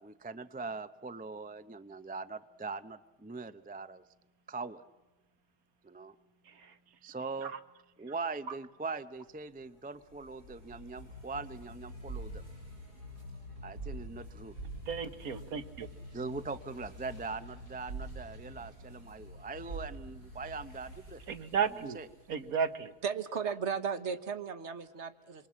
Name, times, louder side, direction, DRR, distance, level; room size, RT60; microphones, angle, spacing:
voice 1, 0.0-4.0 4.5-4.8 5.8-6.1 6.9-7.5 8.0-12.4 13.6-14.5 16.1-21.2 21.6-22.1, right 4 dB, 15° right, 12 dB, 0.3 m, -41 dB
sound 1, 9.3-22.7, right 1 dB, 90° right, 8.3 m, -46 dB
voice 2, 14.9-15.9 21.3-22.0 22.3-22.9, right 6 dB, 65° right, 10 dB, 1.7 m, -33 dB
voice 3, 23.0-25.5, right 6 dB, 50° right, 11 dB, 1.4 m, -35 dB
28.5 x 23.5 x 7.5 m, 1.1 s
omnidirectional pair, 1.6 m